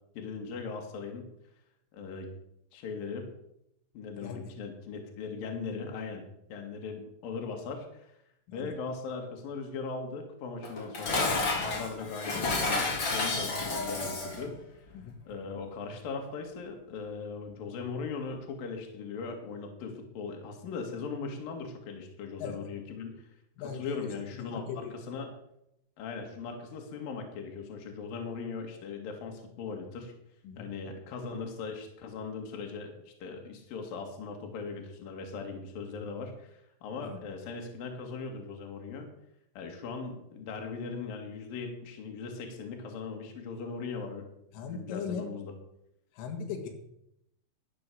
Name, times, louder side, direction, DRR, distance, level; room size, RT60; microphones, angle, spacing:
voice 1, 0.1-1.3 1.9-2.3 2.7-3.3 3.9-6.2 6.5-8.1 8.5-14.5 15.3-23.3 23.7-25.3 26.0-30.1 30.6-39.1 39.5-44.3 44.6-45.5, left 4 dB, 55° left, 3 dB, 3.4 m, -39 dB
voice 2, 4.2-4.5 8.5-8.7 14.9-15.2 22.4-22.6 23.6-25.0 30.4-30.7 37.0-37.2 44.5-45.3 46.1-46.7, left 6 dB, 90° left, 3 dB, 4.5 m, -39 dB
Dishes pots and pans, 10.6-14.5, left 3 dB, 35° left, 2.2 m, -31 dB
12.5 x 9.3 x 7.0 m, 0.78 s
omnidirectional pair, 5.6 m